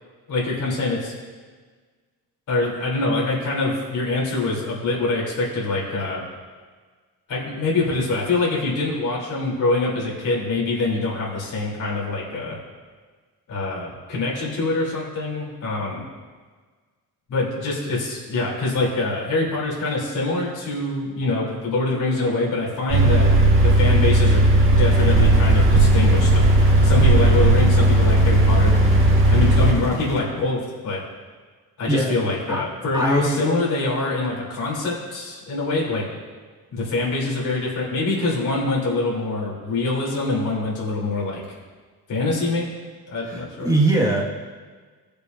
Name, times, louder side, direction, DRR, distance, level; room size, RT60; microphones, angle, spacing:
voice 1, 0.3-1.1 2.5-6.2 7.3-12.6 13.5-16.1 17.3-23.3 23.6-26.5 26.8-28.7 29.3-31.0 31.8-36.0 36.7-41.4 42.1-42.7 43.1-43.7, left 2 dB, 55° left, -5 dB, 3.4 m, -24 dB
sound 1, 22.9-29.7, right 1 dB, 35° right, 1.6 m, -16 dB
sound 2, 24.9-30.2, right 1 dB, 10° left, 2.3 m, -32 dB
voice 2, 32.9-33.5 43.2-44.3, right 1 dB, 10° right, -2 dB, 1.7 m, -21 dB
18.5 x 6.8 x 2.6 m, 1.5 s
cardioid pair, 115°, 37 cm